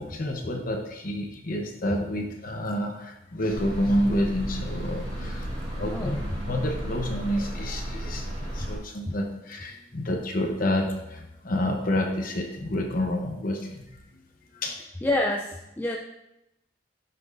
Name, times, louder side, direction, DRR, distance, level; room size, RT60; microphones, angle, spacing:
voice 1, 0.0-5.5 5.7-14.0 14.6-14.7, left 1 dB, 50° left, 2 dB, 0.9 m, -29 dB
sound 1, 3.5-8.8, right 1 dB, 25° right, 2.5 m, -33 dB
voice 2, 5.8-6.2 8.6-8.7 9.1-9.2 15.0-16.0, left 1 dB, 10° left, -1 dB, 0.4 m, -27 dB
10.5 x 6.1 x 2.6 m, 0.89 s
head